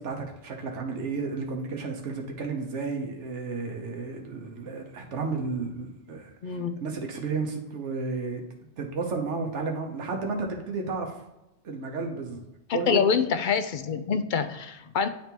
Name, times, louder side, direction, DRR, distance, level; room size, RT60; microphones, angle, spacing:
voice 1, 0.0-8.4 8.8-11.1 11.6-12.4 12.7-13.0, right 4 dB, 85° right, 2 dB, 1.2 m, -32 dB
voice 2, 6.4-6.8 12.7-15.1, left 6 dB, 60° left, 10 dB, 0.5 m, -26 dB
10.0 x 3.5 x 2.9 m, 0.95 s
omnidirectional pair, 1.2 m